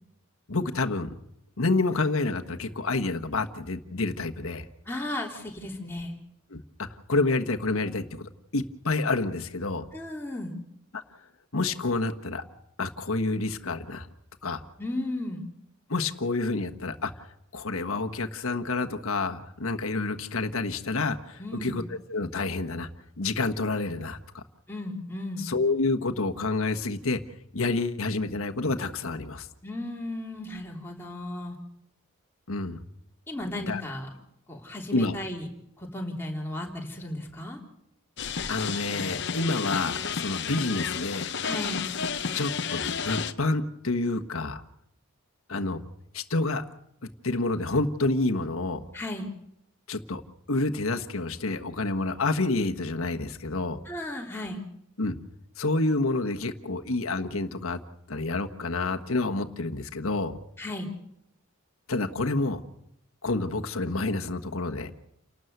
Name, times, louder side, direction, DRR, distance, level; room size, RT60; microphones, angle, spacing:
voice 1, 0.5-1.1 1.6-4.6 6.5-6.6 7.1-9.8 11.5-12.4 12.8-14.1 14.4-14.6 15.9-17.1 17.5-22.9 23.2-24.4 25.4-27.2 27.5-29.5 32.5-32.8 33.6-33.8 34.9-35.1 38.5-41.3 42.3-44.6 45.5-45.8 46.1-46.6 47.2-48.8 49.9-50.2 50.5-53.8 55.0-55.2 55.6-57.8 58.1-60.4 61.9-62.6 63.2-64.9, left 3 dB, 75° left, 6 dB, 1.4 m, -28 dB
voice 2, 4.8-6.2 9.9-10.6 14.8-15.5 21.4-21.8 24.7-25.5 29.6-31.6 33.3-34.1 34.5-35.5 35.8-37.6 41.4-41.9 48.9-49.3 53.8-54.6 60.6-60.9, left 1 dB, 10° left, -2 dB, 3.4 m, -35 dB
sound 1, 38.2-43.3, left 6 dB, 50° left, 0.8 m, -31 dB
29.5 x 12.5 x 8.1 m, 0.78 s
head